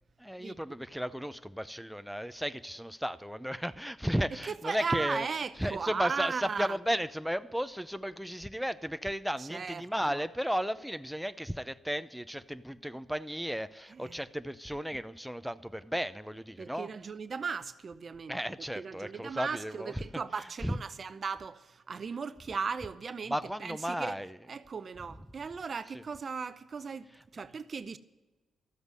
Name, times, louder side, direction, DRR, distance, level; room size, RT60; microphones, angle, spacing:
voice 1, 0.2-5.3 5.6-16.9 18.3-19.9 20.6-20.7 23.3-24.4, equal, ahead, 0.6 m, -34 dB
voice 2, 4.4-6.8 9.4-10.3 13.9-14.2 16.6-18.4 18.8-24.2 24.5-28.0, right 5 dB, 50° right, 0.7 m, -37 dB
12.5 x 8.0 x 9.8 m
hypercardioid pair, 50°, 0 cm